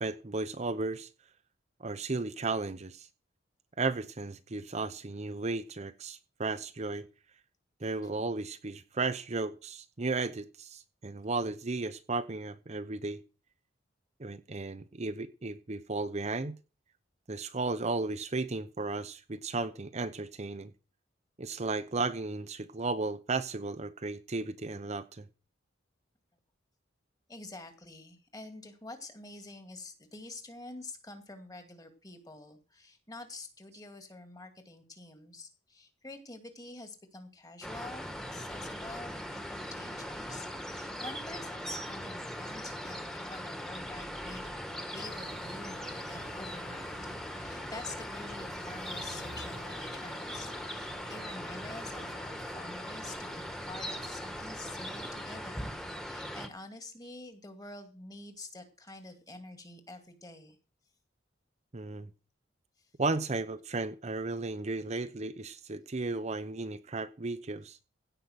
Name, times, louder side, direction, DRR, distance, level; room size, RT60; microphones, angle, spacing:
voice 1, 0.0-1.1 1.8-3.1 3.8-7.0 7.8-13.2 14.2-16.6 17.3-20.7 21.4-25.2 61.7-62.1 63.0-67.8, right 3 dB, 35° right, 0.7 m, -34 dB
voice 2, 27.3-47.0 47.3-60.6, left 2 dB, 20° left, 2.3 m, -47 dB
sound 1, 37.6-56.5, equal, 5° left, 1.6 m, -40 dB
sound 2, 45.0-55.3, left 2 dB, 60° left, 4.9 m, -51 dB
16.0 x 5.6 x 7.9 m
head